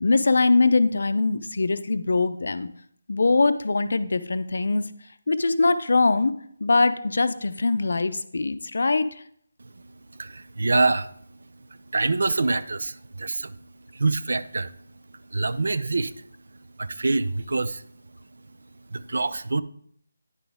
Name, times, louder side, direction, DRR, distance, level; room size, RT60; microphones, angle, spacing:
voice 1, 0.0-2.7 3.1-4.9 5.3-6.3 6.6-9.2, left 3 dB, 70° left, 12 dB, 0.5 m, -22 dB
voice 2, 10.1-11.1 11.9-13.6 13.9-14.8 15.3-16.1 16.8-17.8 18.9-19.6, right 3 dB, 70° right, 14 dB, 0.4 m, -25 dB
9.7 x 4.0 x 3.5 m, 0.65 s
figure-of-eight pair, 160°, 0 cm